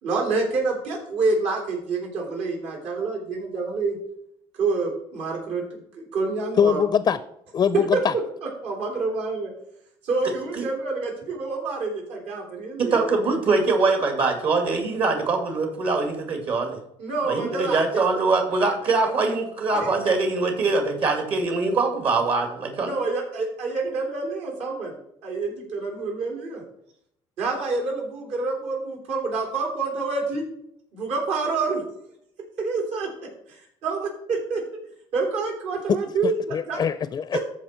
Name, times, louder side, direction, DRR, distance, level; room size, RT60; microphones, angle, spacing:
voice 1, 0.0-4.0 4.6-6.8 7.9-8.0 8.6-9.5 10.0-13.0 17.0-17.8 19.8-19.9 22.8-24.9 25.2-26.6 27.4-30.4 30.9-31.8 32.6-33.1 33.8-34.1 34.5-34.6 35.1-36.8 37.3-37.4, right 3 dB, 70° right, 0 dB, 3.4 m, -27 dB
voice 2, 6.6-7.2 7.5-8.1 35.9-36.0 36.5-37.4, left 7 dB, 35° left, 14 dB, 0.5 m, -22 dB
voice 3, 12.8-16.8 17.3-23.0, right 3 dB, 55° right, 4 dB, 2.2 m, -23 dB
14.0 x 5.1 x 4.3 m, 0.75 s
cardioid pair, 110°, 11 cm